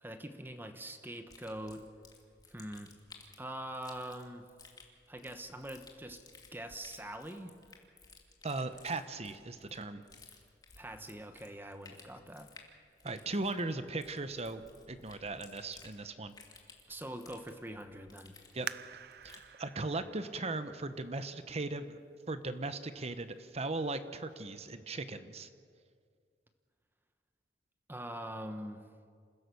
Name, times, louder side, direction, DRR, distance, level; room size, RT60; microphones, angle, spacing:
voice 1, 0.0-1.9 2.5-2.9 3.4-4.5 5.1-6.2 6.5-7.5 10.8-12.5 16.9-18.4 27.9-28.8, right 1 dB, 10° right, 7 dB, 1.1 m, -43 dB
sound 1, 1.3-19.5, left 4 dB, 25° left, 2.5 m, -58 dB
voice 2, 8.4-10.0 13.0-14.6 14.9-16.3 18.5-18.7 19.2-22.0 22.3-25.5, right 2 dB, 35° right, 10 dB, 1.0 m, -38 dB
sound 2, 18.6-22.0 22.6-22.7 23.4-23.7 24.1-24.2, right 9 dB, 60° right, 0.5 m, -47 dB
27.5 x 16.0 x 7.0 m, 2.1 s
head